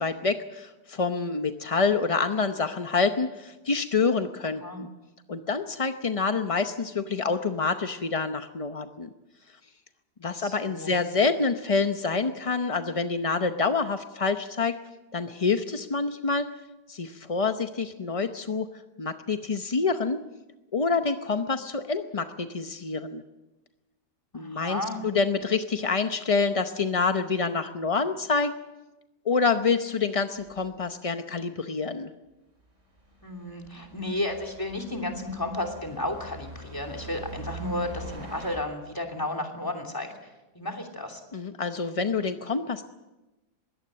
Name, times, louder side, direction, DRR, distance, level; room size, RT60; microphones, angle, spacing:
voice 1, 0.0-4.9 5.3-9.1 10.2-14.8 15.1-16.5 16.9-18.7 19.0-20.2 20.7-23.2 24.3-28.5 29.2-32.1 41.3-42.8, left 4 dB, 40° left, 8 dB, 0.4 m, -27 dB
voice 2, 10.4-10.9 24.3-25.0 33.2-41.2, left 1 dB, 10° left, 7 dB, 2.8 m, -33 dB
sound 1, 30.4-30.5 33.1-38.6, right 2 dB, 45° right, 6.0 m, -43 dB
21.5 x 17.0 x 7.6 m, 1.0 s
omnidirectional pair, 1.8 m